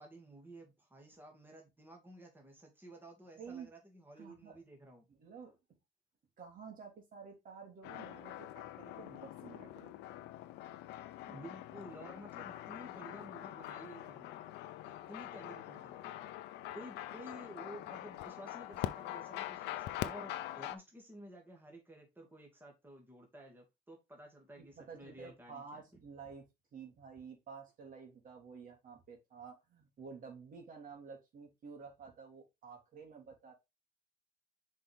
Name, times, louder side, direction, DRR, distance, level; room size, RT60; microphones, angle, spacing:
voice 1, 0.0-5.0 11.3-14.4 14.8-16.2 16.7-25.8, right 1 dB, 10° right, 2 dB, 2.3 m, -53 dB
voice 2, 3.4-3.7 4.2-4.6 5.2-5.6 6.4-9.9 24.6-26.5 26.7-33.5, right 5 dB, 55° right, 2 dB, 3.0 m, -51 dB
sound 1, 7.8-20.8, left 14 dB, 90° left, 0.7 m, -44 dB
6.2 x 4.8 x 3.5 m, 0.22 s
cardioid pair, 110°, 17 cm